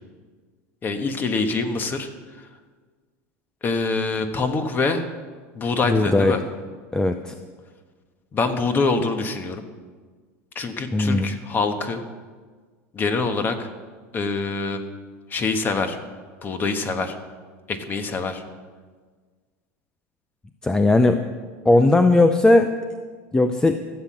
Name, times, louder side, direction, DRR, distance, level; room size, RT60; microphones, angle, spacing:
voice 1, 0.8-2.1 3.6-5.0 5.5-6.4 8.3-9.6 10.5-12.0 12.9-13.7 14.1-14.8 15.3-16.0 16.4-17.2 17.7-18.4, left 4 dB, 25° left, 7 dB, 1.3 m, -25 dB
voice 2, 5.9-6.4 6.9-7.3 10.9-11.3 20.6-21.2 21.7-22.7 23.3-23.8, left 2 dB, 10° left, 8 dB, 0.5 m, -17 dB
14.0 x 7.7 x 7.5 m, 1.5 s
supercardioid pair, 135°, 8 cm